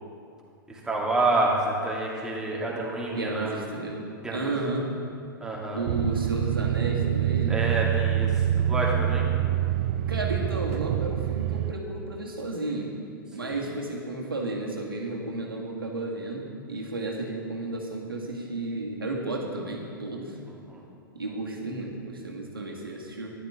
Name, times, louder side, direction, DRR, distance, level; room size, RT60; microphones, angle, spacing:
voice 1, 0.7-3.5 4.2-4.6 5.4-5.8 7.5-9.3 13.4-13.6 20.7-20.8, right 2 dB, 5° right, -5 dB, 2.5 m, -28 dB
voice 2, 3.1-4.0 4.3-4.9 5.7-7.6 10.1-12.9 13.3-20.4 21.1-23.3, right 2 dB, 80° right, -1 dB, 1.9 m, -32 dB
sound 1, 5.9-11.7, right 11 dB, 45° right, 0.4 m, -26 dB
13.5 x 11.0 x 3.7 m, 2.4 s
figure-of-eight pair, 100°, 12 cm